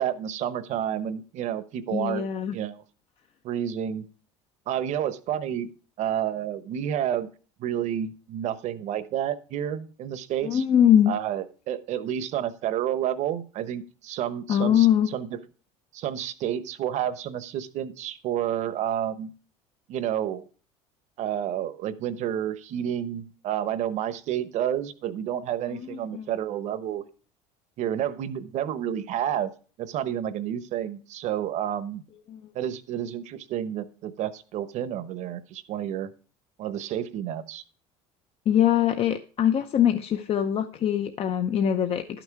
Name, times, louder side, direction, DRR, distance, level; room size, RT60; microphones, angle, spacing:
voice 1, 0.0-2.2 2.5-2.8 3.4-4.0 4.7-5.7 6.0-7.3 7.6-10.6 11.1-15.4 15.9-19.3 19.9-20.5 21.2-27.0 27.8-29.5 29.8-32.0 32.5-36.1 36.6-37.6, right 10 dB, 55° right, 14 dB, 0.9 m, -30 dB
voice 2, 1.9-2.5 10.4-11.1 14.5-15.1 25.7-26.3 32.3-32.4 38.5-42.0, left 10 dB, 45° left, 7 dB, 0.7 m, -22 dB
11.5 x 6.1 x 4.7 m, 0.39 s
supercardioid pair, 110°, 14 cm